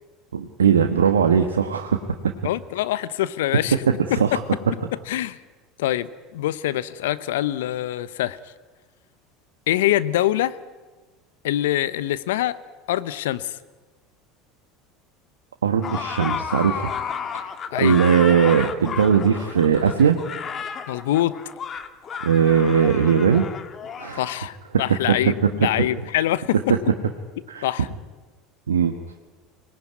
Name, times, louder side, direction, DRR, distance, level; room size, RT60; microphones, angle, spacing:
voice 1, 0.3-2.0 4.1-4.4 15.6-16.9 17.8-20.2 22.2-23.5 24.0-24.2 27.5-27.7 28.7-28.9, right 7 dB, 85° right, 5 dB, 1.4 m, -19 dB
voice 2, 2.4-3.8 4.1-4.4 5.1-5.4 5.8-8.4 9.7-10.6 11.4-12.6 12.9-13.6 17.7-18.0 20.9-21.4 24.1-26.6 27.6-27.9, left 13 dB, 75° left, 16 dB, 1.0 m, -24 dB
sound 1, 15.8-24.3, left 7 dB, 40° left, 1.9 m, -32 dB
24.5 x 19.5 x 9.6 m, 1.3 s
hypercardioid pair, 75°, 0 cm